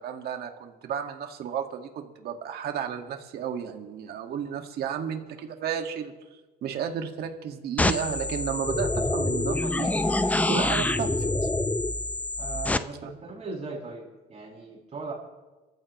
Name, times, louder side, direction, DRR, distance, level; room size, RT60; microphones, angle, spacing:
voice 1, 0.0-6.1 6.6-10.1 10.5-11.5 13.0-13.1, right 8 dB, 70° right, 4 dB, 2.0 m, -33 dB
sound 1, 7.8-12.8, left 2 dB, 10° left, 0.6 m, -26 dB
voice 2, 12.4-15.1, right 4 dB, 40° right, -3 dB, 7.1 m, -38 dB
30.0 x 14.5 x 3.2 m, 1.2 s
cardioid pair, 110°, 17 cm